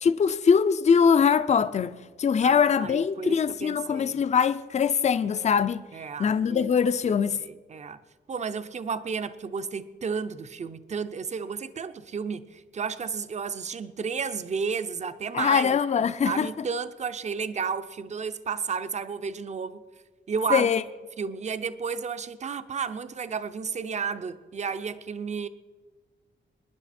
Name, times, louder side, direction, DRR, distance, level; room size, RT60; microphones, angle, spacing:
voice 1, 0.0-5.8 6.2-7.4 15.3-16.5 20.5-20.8, left 6 dB, 35° left, 0.4 m, -22 dB
voice 2, 2.4-4.2 5.9-6.7 7.4-8.0 8.3-15.7 16.0-19.8 20.3-20.7 21.2-25.5, right 6 dB, 35° right, 0.6 m, -32 dB
24.5 x 10.5 x 4.3 m
wide cardioid pair, 175°, 20 cm